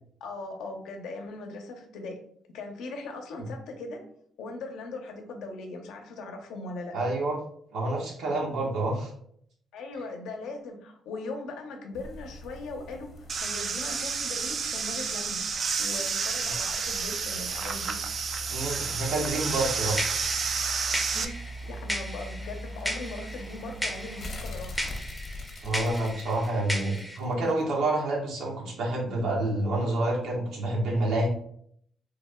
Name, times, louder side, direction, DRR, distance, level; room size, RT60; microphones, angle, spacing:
voice 1, 0.2-2.2 2.5-4.0 4.4-7.0 9.7-13.1 13.4-15.4 15.8-18.0 21.7-24.9, left 2 dB, 85° left, 3 dB, 0.7 m, -39 dB
voice 2, 6.9-7.4 7.7-9.1 18.5-20.4 21.1-21.5 25.6-31.3, right 2 dB, 80° right, -2 dB, 1.2 m, -28 dB
sound 1, 11.9-27.6 28.0-28.1, equal, 50° left, 0.8 m, -42 dB
sound 2, 13.3-21.2, right 5 dB, 50° right, 0.4 m, -30 dB
sound 3, 19.5-27.2, equal, 5° right, 0.6 m, -36 dB
3.4 x 2.1 x 3.5 m, 0.66 s
cardioid pair, 90°, 0 cm